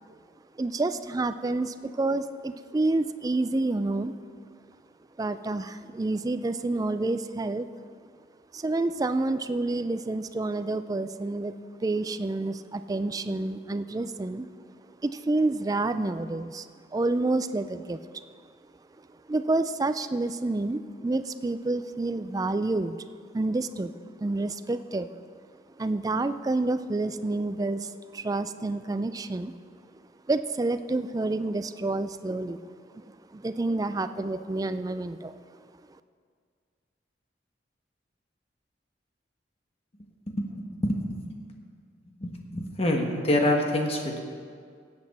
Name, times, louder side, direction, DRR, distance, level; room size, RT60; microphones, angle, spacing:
voice 1, 0.6-4.2 5.2-7.7 8.5-11.5 11.8-14.5 15.0-16.7 16.9-18.2 19.3-23.0 23.3-23.9 24.2-25.1 25.8-29.6 30.3-35.4, right 2 dB, 20° right, 12 dB, 0.3 m, -29 dB
voice 2, 40.4-41.1 42.1-44.2, left 1 dB, 35° left, 2 dB, 1.3 m, -26 dB
17.0 x 7.9 x 4.2 m, 2.1 s
head